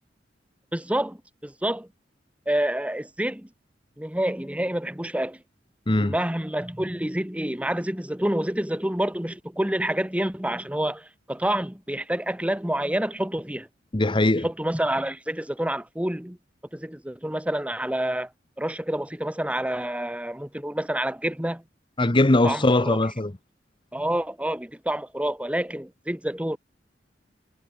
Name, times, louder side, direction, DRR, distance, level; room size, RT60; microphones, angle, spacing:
voice 1, 0.7-1.9 2.5-3.5 4.0-5.4 6.0-13.7 14.4-16.4 16.7-18.3 18.6-21.6 22.0-22.1 22.4-23.0 23.9-26.6, right 1 dB, 5° right, 1.4 m, -28 dB
voice 2, 13.9-14.5 22.0-23.3, left 2 dB, 30° left, 1.0 m, -20 dB
head